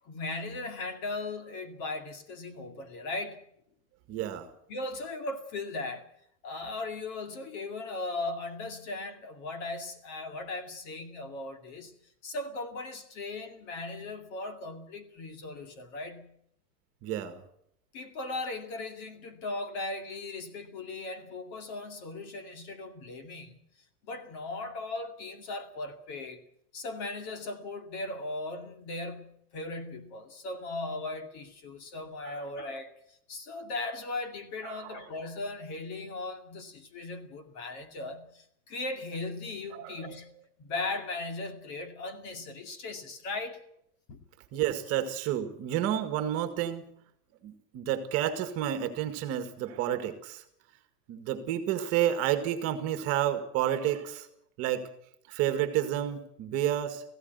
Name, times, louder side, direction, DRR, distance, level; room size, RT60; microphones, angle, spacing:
voice 1, 0.0-3.4 4.7-6.1 6.4-11.9 12.2-16.3 17.9-23.6 24.1-26.4 26.7-40.3 40.6-43.6 44.1-44.2, left 2 dB, 35° left, 2.4 m, -38 dB
voice 2, 4.1-4.5 17.0-17.4 32.2-32.5 34.6-35.0 39.7-40.1 44.5-46.9 47.4-50.4 51.1-54.3 54.6-54.9 55.3-57.0, right 11 dB, 30° right, 1.9 m, -30 dB
18.0 x 16.0 x 9.4 m
supercardioid pair, 165°, 46 cm